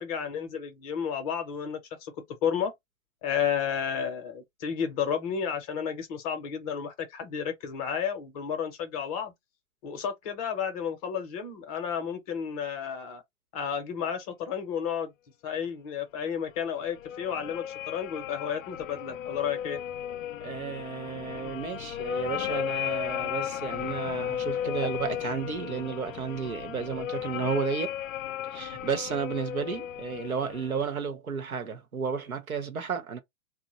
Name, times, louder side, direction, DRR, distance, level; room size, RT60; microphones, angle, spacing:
voice 1, 0.0-2.1 2.4-2.7 3.2-9.3 9.8-13.2 13.5-15.1 15.4-19.8, left 7 dB, 30° left, 0.7 m, -32 dB
sound 1, 16.5-30.8, left 11 dB, 65° left, 0.5 m, -35 dB
voice 2, 20.4-28.0 28.5-33.2, right 6 dB, 85° right, 0.9 m, -32 dB
2.8 x 2.1 x 2.9 m
figure-of-eight pair, 120°, 42 cm